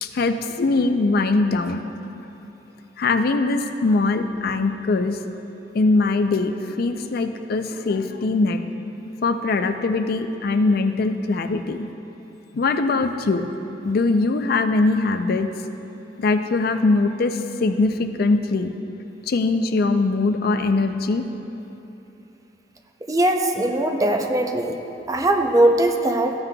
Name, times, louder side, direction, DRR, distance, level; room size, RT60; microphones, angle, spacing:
voice 1, 0.0-1.8 2.2-2.3 3.0-5.2 5.7-8.6 9.0-11.9 12.5-13.4 13.8-15.5 16.2-18.7 19.3-21.2, left 3 dB, 55° left, 8 dB, 0.4 m, -21 dB
voice 2, 23.1-24.8 25.1-26.3, right 1 dB, 20° right, 4 dB, 0.5 m, -20 dB
14.0 x 9.6 x 2.3 m, 3.0 s
head